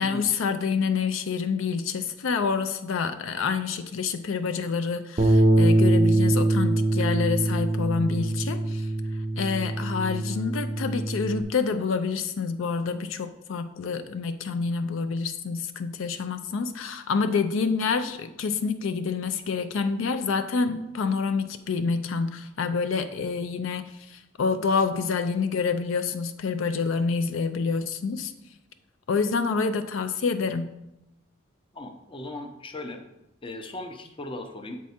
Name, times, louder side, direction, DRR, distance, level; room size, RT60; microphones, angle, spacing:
voice 1, 0.0-8.9 9.4-28.3 29.1-30.7, left 5 dB, 75° left, 9 dB, 0.4 m, -27 dB
Bass guitar, 5.2-11.4, right 2 dB, 30° right, 0.5 m, -23 dB
voice 2, 31.7-33.0 33.4-34.8, left 2 dB, 25° left, 6 dB, 0.6 m, -37 dB
7.3 x 4.6 x 4.2 m, 0.89 s
head